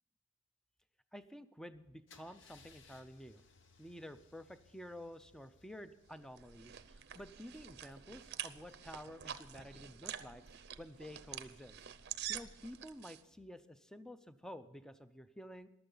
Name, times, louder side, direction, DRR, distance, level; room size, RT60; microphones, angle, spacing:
voice 1, 1.1-3.4 3.8-11.8 12.3-15.7, equal, 5° left, 12 dB, 0.5 m, -51 dB
Car / Engine starting / Idling, 2.1-7.9, left 4 dB, 60° left, 0.9 m, -65 dB
sound 1, 6.1-13.2, right 10 dB, 50° right, 0.6 m, -47 dB
sound 2, 6.6-13.6, right 4 dB, 25° left, 3.5 m, -73 dB
15.0 x 11.5 x 3.9 m, 1.1 s
head